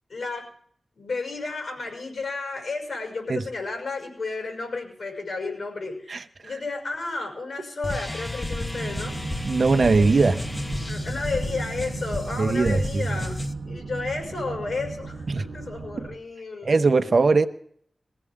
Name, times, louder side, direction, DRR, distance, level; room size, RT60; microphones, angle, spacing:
voice 1, 0.1-0.5 0.9-9.2 10.8-16.9, left 3 dB, 75° left, 1 dB, 6.1 m, -32 dB
sound 1, 7.8-13.5, left 2 dB, 20° left, 0.9 m, -32 dB
sound 2, 8.7-16.2, right 3 dB, 85° right, 0.8 m, -35 dB
voice 2, 9.4-10.4 12.4-13.1 15.3-15.4 16.6-17.5, right 4 dB, 55° right, 8 dB, 1.0 m, -20 dB
21.5 x 16.0 x 3.7 m, 0.62 s
wide cardioid pair, 100°, 0 cm